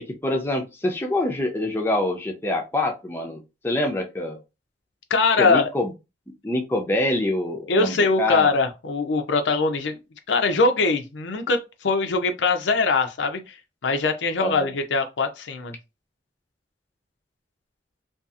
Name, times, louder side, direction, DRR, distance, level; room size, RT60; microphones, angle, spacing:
voice 1, 0.2-4.4 5.4-5.9 6.4-8.5 14.4-14.7, left 1 dB, 15° left, 0.4 m, -25 dB
voice 2, 5.1-5.7 7.7-10.0 10.3-13.6 13.8-15.8, left 3 dB, 85° left, 0.5 m, -22 dB
2.7 x 2.3 x 2.4 m
head